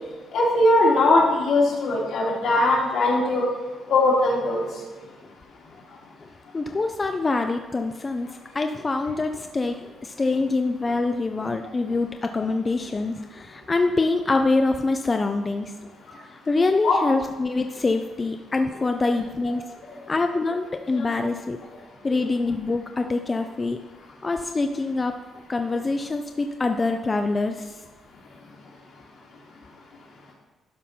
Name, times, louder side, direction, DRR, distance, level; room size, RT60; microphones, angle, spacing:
voice 1, 0.3-3.5 3.9-4.7 16.8-17.0 19.5-19.6 20.9-21.0, left 2 dB, 75° left, -4 dB, 2.7 m, -20 dB
voice 2, 6.5-8.3 8.5-15.9 16.2-19.6 20.1-21.6 22.0-23.8 24.2-25.2 25.5-27.8, left 3 dB, 25° left, 6 dB, 0.4 m, -25 dB
12.0 x 5.4 x 4.3 m, 1.3 s
cardioid pair, 150°, 0 cm